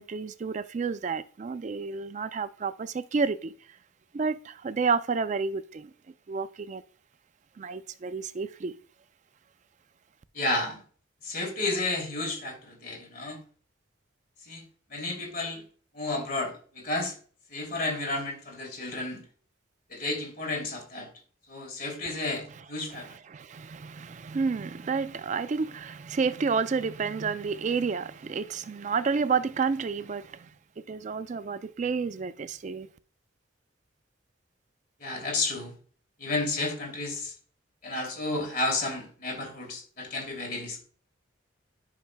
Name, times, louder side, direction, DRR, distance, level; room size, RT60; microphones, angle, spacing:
voice 1, 0.0-3.8 4.1-5.9 6.3-6.8 7.6-8.8 22.1-22.2 22.9-30.5 30.8-32.9, right 5 dB, 35° right, 0.3 m, -30 dB
voice 2, 10.3-10.8 11.2-13.4 14.5-14.6 14.9-15.6 15.9-17.1 17.5-19.2 19.9-21.1 21.5-23.1 35.0-35.7 36.2-37.3 37.8-40.8, left 2 dB, 45° left, 2.6 m, -32 dB
10.5 x 5.7 x 2.2 m
head